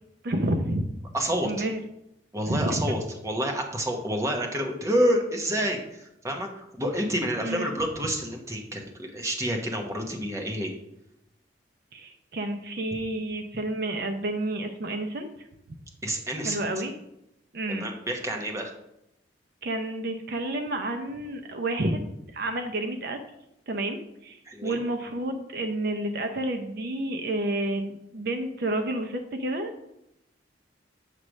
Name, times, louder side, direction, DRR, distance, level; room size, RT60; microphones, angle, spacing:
voice 1, 0.2-0.9 1.4-1.8 2.5-2.9 7.4-7.7 11.9-15.3 16.4-16.9 17.5-17.9 19.6-22.0 22.3-23.2 23.7-29.8, right 1 dB, 60° right, 6 dB, 0.6 m, -30 dB
voice 2, 1.1-1.6 2.3-10.7 16.0-16.6 17.7-18.7 24.5-24.8, equal, 15° right, 2 dB, 1.0 m, -28 dB
7.6 x 3.2 x 6.2 m, 0.83 s
head